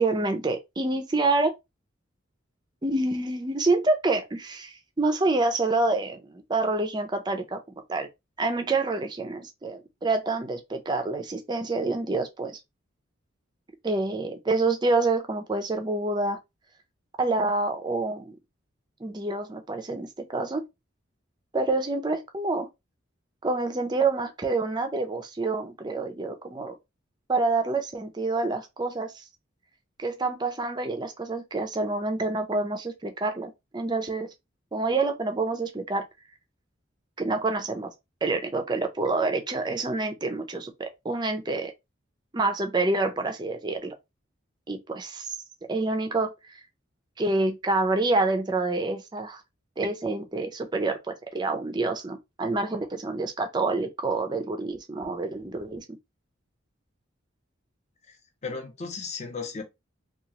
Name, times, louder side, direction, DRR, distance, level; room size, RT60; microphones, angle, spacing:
voice 1, 0.0-1.5 2.8-7.6 7.9-8.1 8.4-12.6 13.8-16.4 17.2-18.4 19.0-20.7 21.5-22.7 23.4-26.7 27.3-29.2 30.0-34.3 34.7-36.0 37.2-37.9 38.2-41.7 42.3-43.9 44.7-45.4 45.7-46.5 47.2-49.4 49.8-55.8, right 3 dB, 20° right, 0.4 m, -27 dB
voice 2, 58.4-59.6, left 4 dB, 35° left, 0.5 m, -35 dB
2.8 x 2.3 x 2.7 m
head